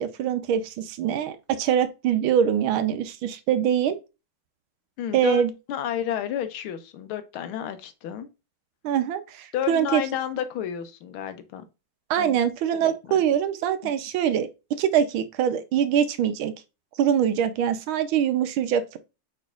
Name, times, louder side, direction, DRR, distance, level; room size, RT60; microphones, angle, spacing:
voice 1, 0.0-4.0 5.1-5.5 8.8-10.0 12.1-14.5 14.8-16.5 17.0-19.0, right 9 dB, 75° right, 1.4 m, -23 dB
voice 2, 5.0-5.4 5.7-8.3 9.5-11.6 12.2-12.4 12.8-13.2, left 10 dB, 85° left, 1.6 m, -31 dB
5.1 x 4.3 x 2.3 m
omnidirectional pair, 2.3 m